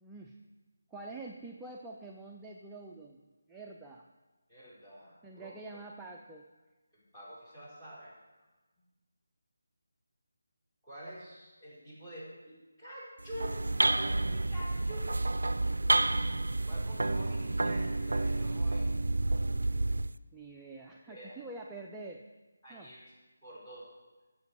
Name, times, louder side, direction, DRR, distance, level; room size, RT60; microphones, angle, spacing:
voice 1, 0.0-0.4 0.9-3.2 3.5-4.1 5.2-6.4 20.3-22.2 22.7-22.9, right 2 dB, 5° right, -1 dB, 0.5 m, -46 dB
voice 2, 4.5-5.8 6.9-8.2 10.8-13.7 14.3-15.1 16.7-18.9 21.1-21.4 22.6-23.1 23.4-23.9, equal, 15° left, -8 dB, 4.6 m, -47 dB
sound 1, 13.2-20.2, right 2 dB, 70° right, 0.4 m, -30 dB
14.0 x 7.5 x 4.8 m, 1.2 s
figure-of-eight pair, 160°, 0 cm